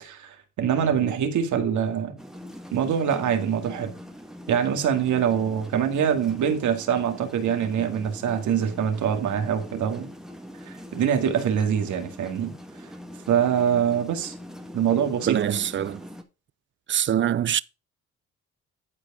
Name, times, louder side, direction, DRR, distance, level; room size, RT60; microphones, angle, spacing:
voice 1, 0.0-2.2 2.7-3.9 4.5-10.1 10.7-12.5 13.3-14.3 14.7-15.6, right 8 dB, 75° right, 2.1 m, -24 dB
sound 1, 2.2-16.2, equal, ahead, 1.6 m, -42 dB
voice 2, 15.3-16.0 16.9-17.6, right 10 dB, 40° right, 0.5 m, -24 dB
12.0 x 4.7 x 5.1 m
cardioid pair, 90°, 30 cm